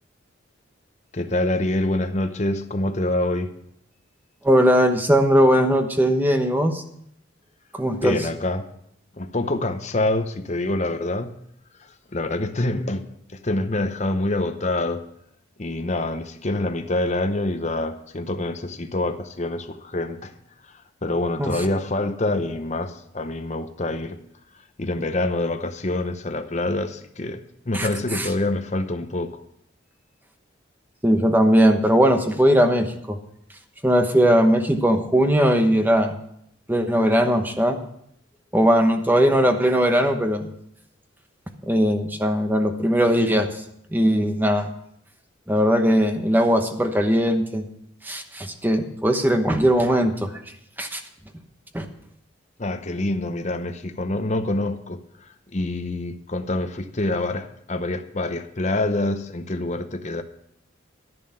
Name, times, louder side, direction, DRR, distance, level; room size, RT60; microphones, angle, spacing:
voice 1, 1.1-3.5 7.9-8.6 9.2-11.3 12.1-13.0 13.3-15.0 15.6-20.3 21.0-24.2 24.8-29.4 52.6-60.2, left 2 dB, 35° left, 7 dB, 0.8 m, -26 dB
voice 2, 4.4-6.8 7.7-8.2 21.4-21.6 27.7-27.9 28.1-28.3 31.0-33.2 33.8-36.1 36.7-37.8 38.5-40.5 41.6-43.5 43.9-44.7 45.5-47.6 48.0-50.3 50.8-51.0 51.7-51.9, equal, 10° right, 6 dB, 1.0 m, -19 dB
11.0 x 11.0 x 5.6 m, 0.72 s
head